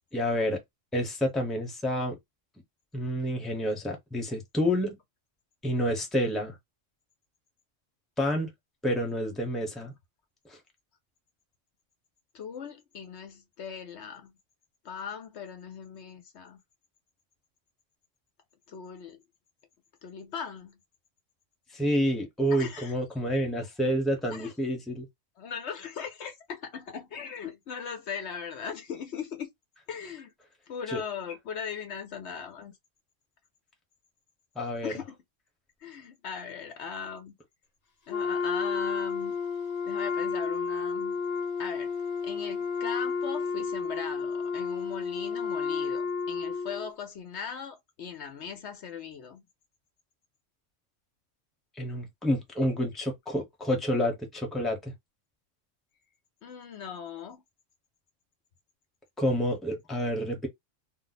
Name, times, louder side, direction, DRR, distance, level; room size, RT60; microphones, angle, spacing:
voice 1, 0.1-0.6 0.9-2.2 2.9-4.9 5.6-6.6 8.2-8.5 8.8-9.9 10.5-10.6 21.7-25.1 30.9-31.0 34.6-34.9 51.8-54.9 59.2-60.5, equal, ahead, 0.8 m, -28 dB
voice 2, 12.3-14.4 14.8-16.6 18.7-19.2 20.0-20.8 22.5-22.9 24.3-24.5 25.4-29.5 29.9-30.3 30.7-32.7 34.8-35.2 35.8-37.4 38.1-39.4 39.8-41.2 41.6-49.4 56.4-57.4, left 6 dB, 65° left, 0.9 m, -39 dB
Wind instrument woodwind instrument, 38.1-46.9, left 5 dB, 35° left, 0.8 m, -31 dB
2.7 x 2.1 x 4.0 m
omnidirectional pair, 1.3 m